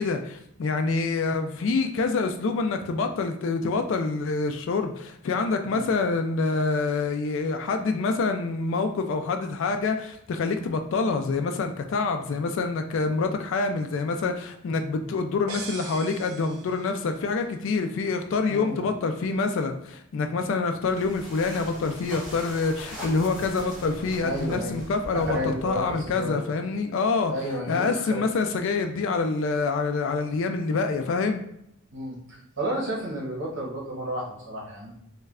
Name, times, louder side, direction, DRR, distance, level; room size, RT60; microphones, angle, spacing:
voice 1, 0.0-27.3 27.7-31.4, left 4 dB, 60° left, 6 dB, 0.3 m, -26 dB
sound 1, 15.5-17.3, right 5 dB, 80° right, 0.5 m, -40 dB
voice 2, 18.5-18.9 24.2-24.8 25.1-26.5 27.3-28.3 31.9-32.2 32.6-34.9, right 1 dB, 55° right, -3 dB, 0.9 m, -32 dB
sound 2, 20.8-26.4, equal, 5° right, 0.8 m, -40 dB
3.1 x 2.2 x 3.5 m, 0.75 s
head